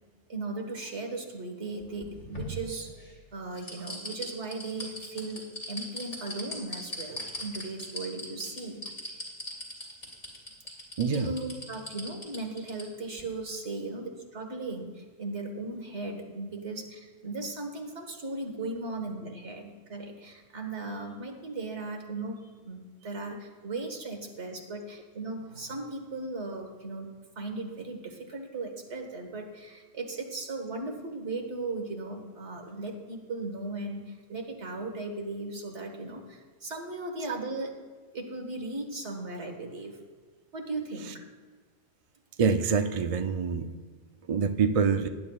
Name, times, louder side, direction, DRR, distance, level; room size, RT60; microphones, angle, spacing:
voice 1, 0.3-2.9 3.3-8.8 11.1-37.8 38.1-40.0 40.5-41.3, right 2 dB, 80° right, 3 dB, 1.8 m, -37 dB
sound 1, 1.8-3.1 3.6-12.8 13.2-13.3, equal, 55° left, 3.0 m, -39 dB
voice 2, 11.0-11.3 42.4-43.7 44.3-45.1, right 5 dB, 45° right, 7 dB, 0.4 m, -25 dB
18.5 x 10.5 x 2.3 m, 1.5 s
omnidirectional pair, 1.2 m